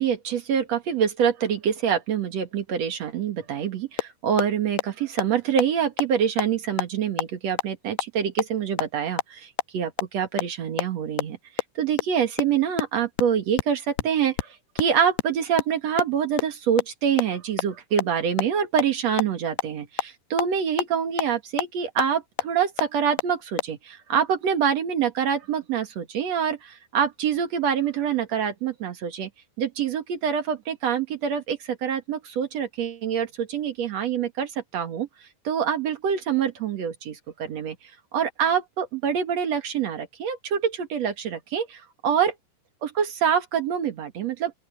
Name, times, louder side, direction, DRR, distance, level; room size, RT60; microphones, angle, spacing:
voice 1, 0.0-11.4 11.8-29.3 29.6-35.1 35.4-37.8 38.1-42.3 42.8-44.5, right 8 dB, 50° right, 2.2 m, -26 dB
sound 1, 4.0-4.1 4.4-4.5 4.8-4.9 5.2-5.3 5.6-5.7 6.0-6.1 6.4-6.5 6.8-6.9 7.2-7.3 7.6-7.7 8.0-8.1 8.4-8.5 8.8-8.9 9.2-9.3 9.6-9.7 10.0-10.1 10.4-10.5 10.8-10.9 11.2-11.3 11.6-11.7 12.0-12.1 12.4-12.5 12.8-12.9 13.2-13.3 13.6-13.7 14.0-14.1 14.4-14.5 14.8-14.9 15.2-15.3 15.6-15.7 16.0-16.1 16.4-16.5 16.8-16.9 17.2-17.3 17.6-17.7 18.0-18.1 18.4-18.5 18.8-18.9 19.2-19.3 19.6-19.7 20.0-20.1 20.4-20.5 20.8-20.9 21.2-21.3 21.6-21.7 22.0-22.1 22.4-22.5 22.8-22.9 23.2-23.3 23.6-23.7, left 13 dB, 80° left, 2.6 m, -25 dB
open air
omnidirectional pair, 4.9 m